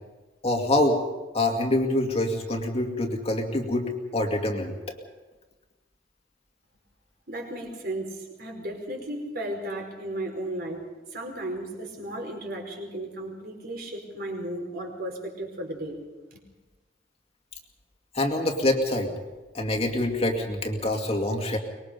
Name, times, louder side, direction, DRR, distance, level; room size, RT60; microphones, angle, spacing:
voice 1, 0.4-1.0 1.3-4.7 18.1-19.1 19.5-21.6, left 1 dB, 30° left, 2 dB, 2.2 m, -25 dB
voice 2, 7.3-10.8 11.1-16.0 16.3-16.4, right 1 dB, 50° right, 1 dB, 4.9 m, -35 dB
24.0 x 21.5 x 5.3 m, 1.2 s
head